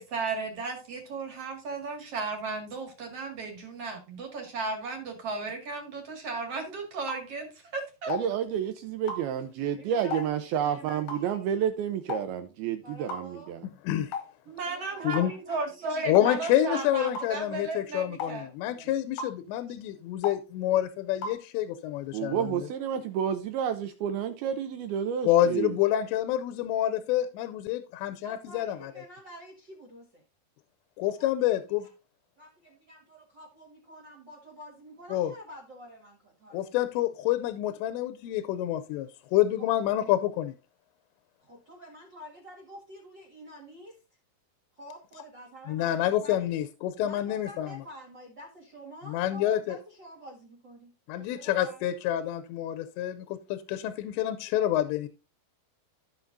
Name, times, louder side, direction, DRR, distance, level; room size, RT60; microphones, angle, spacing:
voice 1, 0.0-8.1 14.5-18.9, right 3 dB, 45° right, 2 dB, 2.5 m, -35 dB
sound 1, 7.1-7.3 8.1-8.3 9.1-9.3 10.1-10.3 11.1-11.3 12.1-12.3 13.1-13.3 14.1-14.3 15.1-15.3 16.2-16.3 17.2-17.3 18.2-18.4 19.2-19.4 20.2-20.4 21.2-21.4, left 4 dB, 70° left, 2.1 m, -34 dB
voice 2, 8.1-13.7 22.1-25.8, right 9 dB, 90° right, 8 dB, 2.2 m, -30 dB
voice 3, 9.8-11.4 12.8-13.5 14.6-17.0 28.2-30.2 31.2-31.6 32.4-36.6 39.6-39.8 41.4-44.0 44.7-46.6 47.0-51.9, equal, 65° right, 3 dB, 1.1 m, -48 dB
voice 4, 16.1-22.7 25.2-28.9 31.0-31.9 35.1-35.3 36.5-40.5 45.7-47.7 49.1-49.8 51.1-55.1, left 12 dB, 90° left, 10 dB, 2.8 m, -28 dB
14.5 x 5.8 x 2.6 m, 0.30 s
omnidirectional pair, 5.0 m